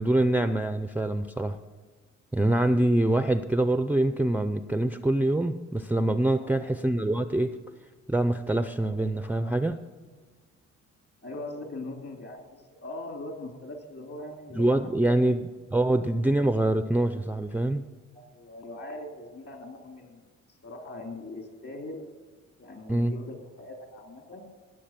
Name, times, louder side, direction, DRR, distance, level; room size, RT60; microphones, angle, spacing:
voice 1, 0.0-1.6 2.3-7.5 8.1-9.8 14.5-17.8 22.9-23.2, right 1 dB, 5° right, 9 dB, 0.5 m, -25 dB
voice 2, 6.4-6.7 11.2-15.2 18.1-20.2 20.6-22.1 22.6-24.5, left 2 dB, 50° left, 3 dB, 3.0 m, -41 dB
17.0 x 7.0 x 5.8 m, 1.4 s
cardioid pair, 90°, 30 cm